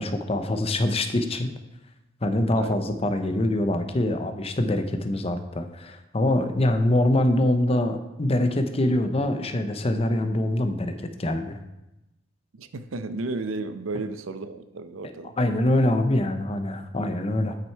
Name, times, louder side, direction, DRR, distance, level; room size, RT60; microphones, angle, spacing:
voice 1, 0.0-1.5 2.2-11.6 15.4-17.6, left 1 dB, 30° left, 8 dB, 0.7 m, -24 dB
voice 2, 12.5-15.4, right 3 dB, 85° right, 11 dB, 0.6 m, -33 dB
8.6 x 6.1 x 4.6 m, 0.94 s
head